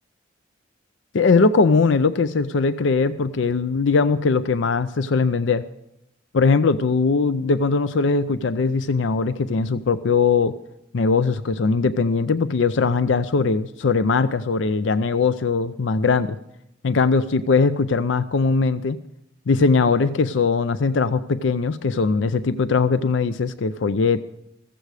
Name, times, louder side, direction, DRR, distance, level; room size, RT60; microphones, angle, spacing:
voice 1, 1.1-5.6 6.3-10.5 10.9-16.4 16.8-19.0 19.5-24.2, left 4 dB, 70° left, 14 dB, 0.5 m, -20 dB
14.5 x 14.5 x 4.9 m, 0.81 s
head